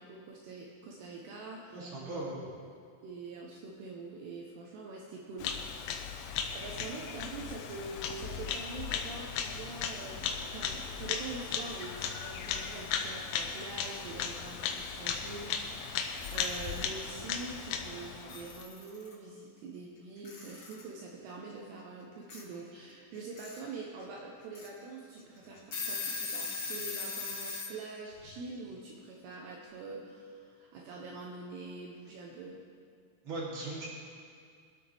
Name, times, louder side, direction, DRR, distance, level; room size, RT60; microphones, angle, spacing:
voice 1, 0.0-2.5 3.0-6.2 6.5-32.6, right 3 dB, 75° right, -2 dB, 3.0 m, -45 dB
voice 2, 1.7-2.4 33.2-33.9, right 2 dB, 30° right, -7 dB, 3.4 m, -38 dB
Bird vocalization bird call bird song, 5.4-18.6, left 7 dB, 80° left, 2.3 m, -37 dB
Alarm / Clock, 16.1-16.8 18.0-18.1 18.3-19.1 20.2-20.9 22.3-22.4 23.1-23.6 24.0-24.1 24.5-24.7 25.2-25.3 25.6-27.7, left 4 dB, 35° left, 3.0 m, -38 dB
23.0 x 8.4 x 3.5 m, 2.2 s
omnidirectional pair, 5.1 m